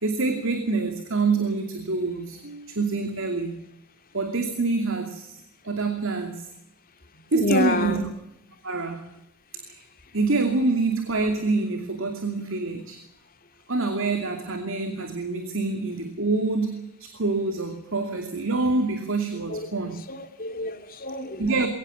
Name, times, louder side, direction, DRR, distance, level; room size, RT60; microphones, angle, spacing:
voice 1, 0.0-3.6 4.1-6.5 7.3-8.0 8.6-9.0 9.6-9.8 10.1-13.0 13.7-20.0 21.4-21.7, right 3 dB, 65° right, 6 dB, 2.6 m, -26 dB
voice 2, 7.3-8.1 19.5-19.6 20.1-21.4, left 2 dB, 45° left, 6 dB, 2.9 m, -27 dB
22.5 x 18.5 x 8.5 m, 0.84 s
head